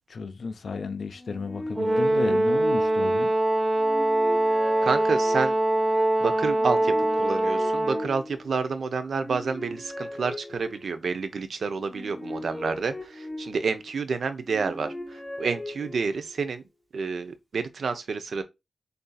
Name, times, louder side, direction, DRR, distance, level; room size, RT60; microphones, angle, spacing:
voice 1, 0.1-3.3, left 4 dB, 65° left, 0.5 m, -33 dB
sound 1, 1.2-3.3 3.8-5.8 6.5-8.6 9.1-11.1 11.8-13.9 14.4-16.4, left 1 dB, 15° left, 0.7 m, -39 dB
Brass instrument, 1.8-8.1, right 1 dB, 20° right, 0.9 m, -23 dB
voice 2, 4.8-5.6 6.2-16.6 16.9-18.4, right 5 dB, 75° right, 0.6 m, -29 dB
6.6 x 2.7 x 2.3 m
wide cardioid pair, 170°, 0 cm